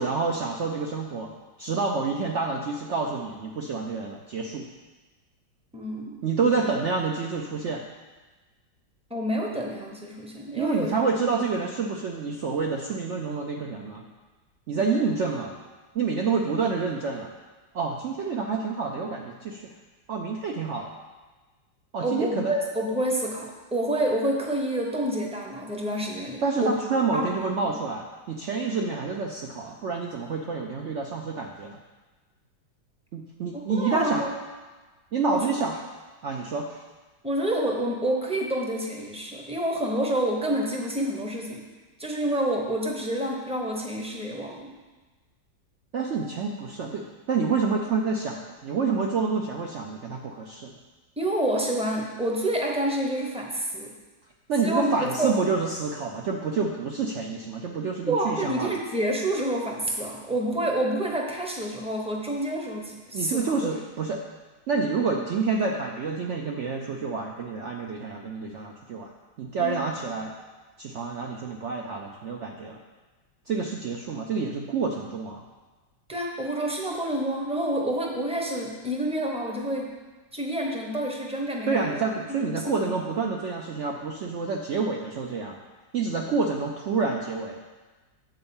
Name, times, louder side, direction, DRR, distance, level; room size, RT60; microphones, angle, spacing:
voice 1, 0.0-1.3 1.6-4.7 6.2-7.8 10.6-14.1 14.7-15.5 15.9-17.3 17.7-19.7 20.1-20.9 21.9-22.5 26.4-31.8 33.1-34.3 35.1-35.8 36.2-36.8 45.9-50.7 54.5-58.7 63.1-64.2 64.7-69.1 69.4-70.3 70.8-72.8 73.5-75.4 81.7-85.6 85.9-87.6, right 4 dB, 80° right, 1 dB, 0.6 m, -28 dB
voice 2, 5.7-6.2 9.1-10.9 11.2-11.3 14.8-15.0 22.0-23.5 23.7-26.7 27.1-27.3 27.6-27.7 33.5-34.3 35.3-35.5 37.2-41.6 42.0-44.7 51.2-53.9 54.6-55.5 58.1-63.6 69.6-69.8 76.1-79.9 80.3-82.0 82.3-83.0, right 1 dB, 5° right, -1 dB, 0.5 m, -28 dB
8.0 x 4.4 x 7.1 m, 1.3 s
omnidirectional pair, 2.0 m